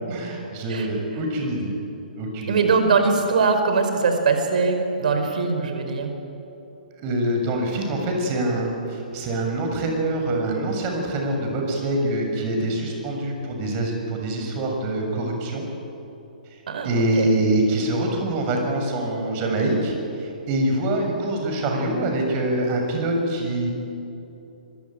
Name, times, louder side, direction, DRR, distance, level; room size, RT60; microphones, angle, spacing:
voice 1, 0.1-1.7 2.2-2.6 6.9-15.7 16.8-23.7, right 1 dB, 35° right, 2 dB, 7.0 m, -25 dB
voice 2, 2.5-6.1 16.7-17.3, right 4 dB, 60° right, 6 dB, 4.8 m, -21 dB
25.0 x 22.5 x 9.1 m, 2.9 s
figure-of-eight pair, 125°, 5 cm